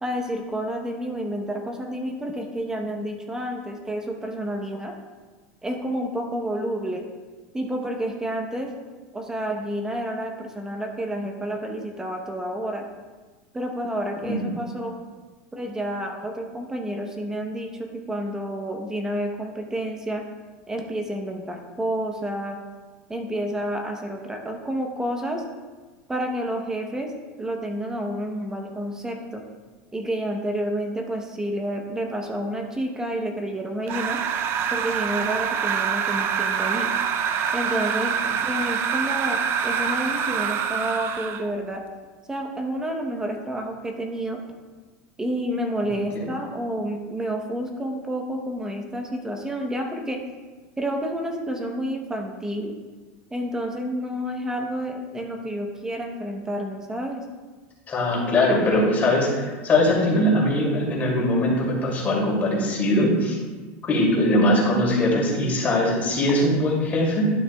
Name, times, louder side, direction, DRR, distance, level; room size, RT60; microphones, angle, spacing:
voice 1, 0.0-4.9 5.6-7.0 7.5-8.7 9.1-12.8 13.5-14.9 15.5-20.2 20.7-22.6 23.1-25.4 26.1-27.1 27.4-29.4 29.9-34.2 34.7-36.9 37.5-41.8 42.3-44.4 45.2-50.2 50.8-52.7 53.3-57.2, right 1 dB, 10° right, 3 dB, 0.9 m, -29 dB
sound 1, 33.9-41.5, right 7 dB, 35° right, 0.4 m, -25 dB
voice 2, 45.8-46.3 57.9-63.4 63.9-67.2, left 1 dB, 25° left, -3 dB, 2.5 m, -21 dB
12.0 x 6.5 x 2.3 m, 1.3 s
supercardioid pair, 140°, 6 cm